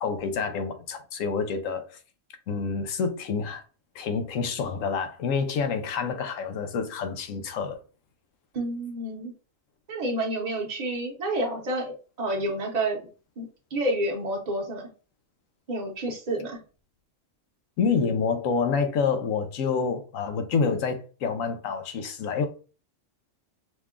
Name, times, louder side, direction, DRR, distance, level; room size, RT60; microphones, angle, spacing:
voice 1, 0.0-2.0 2.5-3.6 3.9-7.8 17.8-22.5, left 5 dB, 85° left, 1.1 m, -28 dB
voice 2, 8.5-9.3 9.9-13.0 13.4-13.5 13.7-14.9 15.7-16.6, right 1 dB, 35° right, 0.9 m, -29 dB
5.0 x 2.3 x 3.6 m
omnidirectional pair, 1.3 m